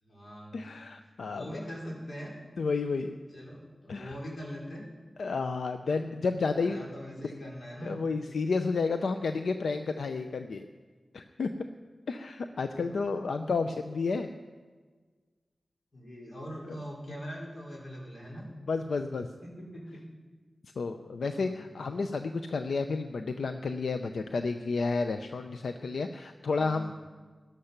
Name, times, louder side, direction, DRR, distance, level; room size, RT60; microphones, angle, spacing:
voice 1, 0.0-0.7 1.3-2.3 3.3-4.8 6.5-8.0 12.7-13.0 15.9-18.4 19.4-20.0 21.3-21.6 26.4-26.9, equal, 55° left, -3 dB, 4.7 m, -42 dB
voice 2, 0.5-1.6 2.6-3.1 3.9-4.2 5.2-6.8 7.8-10.7 11.1-11.5 12.1-14.3 16.7-16.8 18.7-19.3 20.8-26.9, left 4 dB, 85° left, 8 dB, 0.5 m, -31 dB
13.5 x 11.5 x 5.8 m, 1.4 s
cardioid pair, 45°, 0 cm